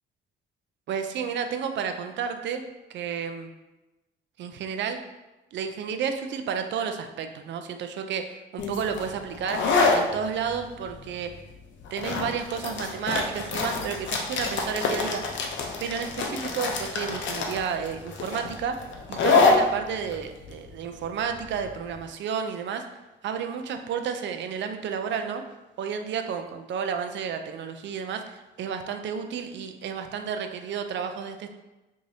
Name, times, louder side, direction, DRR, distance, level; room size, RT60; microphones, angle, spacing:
voice 1, 0.9-2.6 2.9-3.5 4.4-5.0 5.5-9.7 9.9-11.3 11.9-15.2 15.8-18.8 19.1-22.8 23.2-25.4 25.8-31.5, right 7 dB, 65° right, 6 dB, 0.4 m, -31 dB
sound 1, 8.6-22.0, left 4 dB, 70° left, 0.6 m, -27 dB
4.7 x 2.7 x 2.7 m, 1.1 s
cardioid pair, 90°, 20 cm